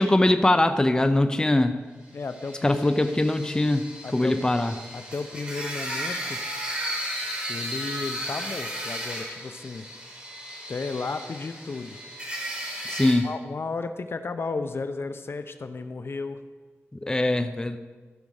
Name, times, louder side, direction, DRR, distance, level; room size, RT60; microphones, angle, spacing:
voice 1, 0.0-1.8 2.6-3.9 4.1-4.7 12.9-13.3 17.0-17.8, left 1 dB, 15° left, 8 dB, 0.6 m, -22 dB
voice 2, 2.1-2.8 4.0-4.4 4.9-6.4 7.5-9.9 10.7-12.0 13.2-16.4, left 4 dB, 55° left, 9 dB, 0.6 m, -33 dB
sound 1, 2.2-13.1, equal, 25° right, 3.8 m, -35 dB
14.5 x 5.3 x 6.4 m, 1.3 s
wide cardioid pair, 100°, 5 cm